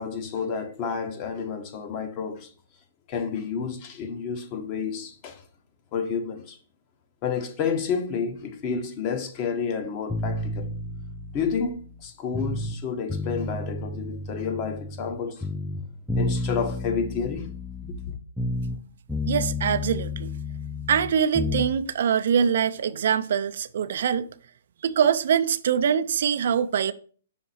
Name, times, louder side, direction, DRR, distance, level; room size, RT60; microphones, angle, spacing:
voice 1, 0.0-2.5 3.1-5.4 5.9-6.6 7.2-10.7 11.3-15.4 16.1-17.5 17.8-18.2, left 6 dB, 35° left, 1.0 m, -30 dB
sound 1, 10.1-12.8 13.1-15.2 15.4-18.8 19.1-21.7, left 2 dB, ahead, 0.5 m, -31 dB
voice 2, 19.3-20.3 20.9-24.3 24.8-26.9, right 8 dB, 60° right, 0.4 m, -23 dB
5.7 x 4.1 x 4.0 m
hypercardioid pair, 140°, 0 cm